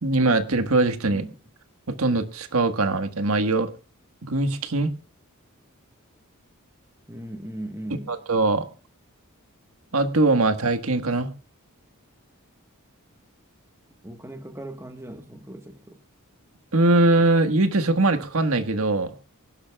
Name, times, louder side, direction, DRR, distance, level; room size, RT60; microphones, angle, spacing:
voice 1, 0.0-1.3 1.9-3.7 4.2-4.9 8.1-8.7 9.9-11.3 16.7-19.2, right 2 dB, 70° right, 8 dB, 1.5 m, -21 dB
voice 2, 7.1-8.2 14.0-16.0, right 1 dB, 10° right, 7 dB, 1.3 m, -38 dB
24.5 x 11.5 x 2.4 m, 0.36 s
head